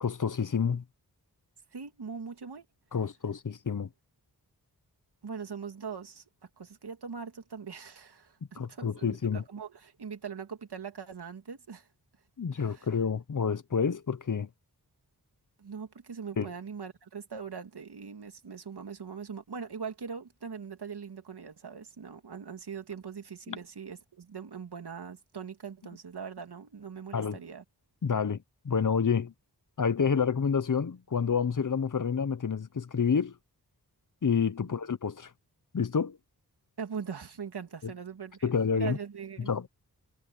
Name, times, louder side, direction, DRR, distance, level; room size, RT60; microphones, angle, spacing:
voice 1, 0.0-0.8 2.9-3.9 8.6-9.4 12.4-14.5 16.4-16.5 23.5-23.6 27.1-27.4 28.0-29.3 29.8-33.3 34.2-35.3 35.7-36.2 38.4-39.0 39.5-39.7, left 6 dB, 50° left, 1.0 m, -28 dB
voice 2, 1.7-2.6 5.2-6.2 6.6-11.9 12.5-12.9 15.6-27.6 36.8-39.7, right 6 dB, 80° right, 2.6 m, -41 dB
wide cardioid pair, 65°, 39 cm